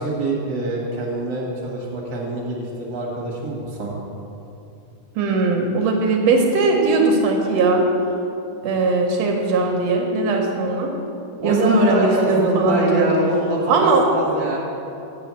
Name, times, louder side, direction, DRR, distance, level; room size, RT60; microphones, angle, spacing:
voice 1, 0.0-3.9 11.4-14.6, right 2 dB, 50° right, -3 dB, 1.3 m, -24 dB
voice 2, 5.1-7.9 8.6-10.9 11.4-13.1 13.7-14.0, right 3 dB, 70° right, 2 dB, 1.7 m, -19 dB
7.8 x 6.9 x 7.4 m, 2.7 s
omnidirectional pair, 3.8 m